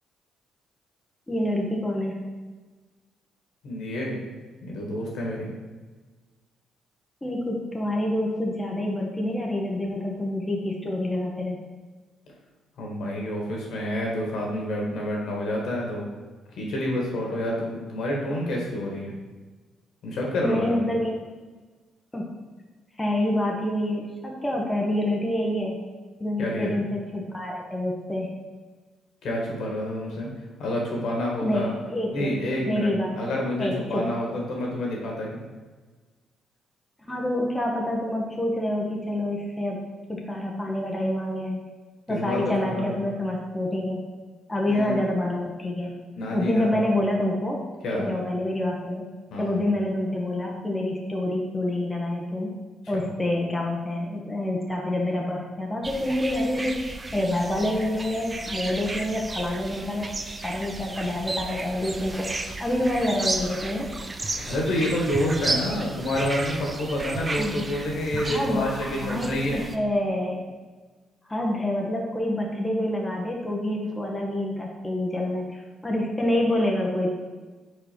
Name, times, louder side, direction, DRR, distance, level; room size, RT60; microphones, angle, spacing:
voice 1, 1.3-2.1 7.2-11.6 20.4-21.2 22.1-22.3 23.0-25.8 26.2-28.3 31.4-32.4 32.7-33.1 33.6-34.0 37.1-39.8 40.1-41.6 42.1-44.0 44.5-45.9 46.3-47.6 47.9-49.0 49.4-52.5 52.9-60.1 60.4-62.3 62.6-63.9 67.4-67.6 68.1-70.4 71.3-77.1, left 1 dB, 10° left, -1 dB, 1.1 m, -27 dB
voice 2, 3.6-4.2 4.6-5.5 12.8-16.1 16.6-19.1 20.0-20.8 26.4-26.8 29.2-30.3 30.6-31.7 32.1-32.9 33.2-35.4 42.1-42.9 44.7-45.0 46.2-46.7 47.8-48.0 49.3-49.5 52.9-53.0 64.5-69.6, left 1 dB, 70° left, -1 dB, 1.8 m, -28 dB
sound 1, 55.8-69.8, right 2 dB, 25° right, 0.6 m, -33 dB
4.6 x 4.4 x 5.2 m, 1.3 s
cardioid pair, 80°, 0 cm